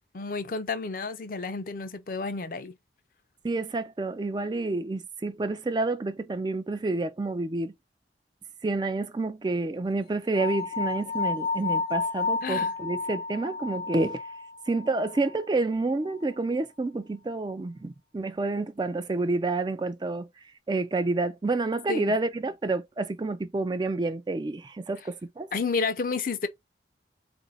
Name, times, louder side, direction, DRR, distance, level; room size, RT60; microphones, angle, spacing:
voice 1, 0.0-2.8 12.4-12.7 21.9-22.1 25.5-26.5, left 4 dB, 50° left, 0.5 m, -31 dB
voice 2, 3.4-7.7 8.6-14.2 14.7-20.3 20.7-25.5, right 2 dB, 25° right, 0.3 m, -29 dB
sound 1, 10.3-15.4, left 4 dB, 80° left, 1.0 m, -31 dB
3.9 x 2.5 x 4.0 m
head